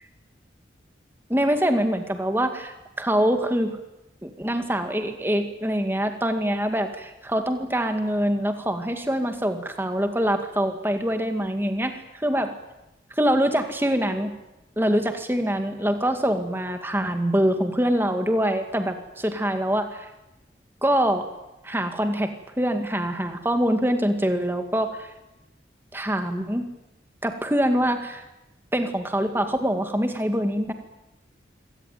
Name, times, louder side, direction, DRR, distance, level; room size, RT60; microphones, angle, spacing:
voice 1, 1.3-3.8 4.2-12.5 13.2-14.3 14.8-20.1 20.8-21.3 21.6-25.1 25.9-26.7 27.2-28.2 28.7-30.7, equal, 10° right, 6 dB, 2.0 m, -24 dB
25.0 x 18.0 x 9.3 m, 0.94 s
head